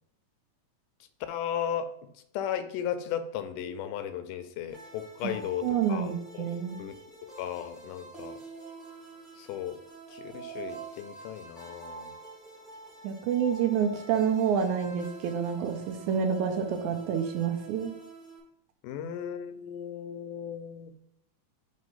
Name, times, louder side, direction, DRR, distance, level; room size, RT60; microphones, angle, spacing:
voice 1, 1.3-1.9 2.3-6.5 6.8-7.0 7.2-8.4 9.4-9.8 10.1-12.1 18.8-20.9, left 9 dB, 85° left, 9 dB, 2.2 m, -35 dB
sound 1, 4.7-18.4, right 4 dB, ahead, 0.6 m, -47 dB
voice 2, 5.6-6.8 13.0-17.9, right 7 dB, 80° right, 5 dB, 2.0 m, -28 dB
5.2 x 3.3 x 5.5 m, 0.68 s
omnidirectional pair, 3.7 m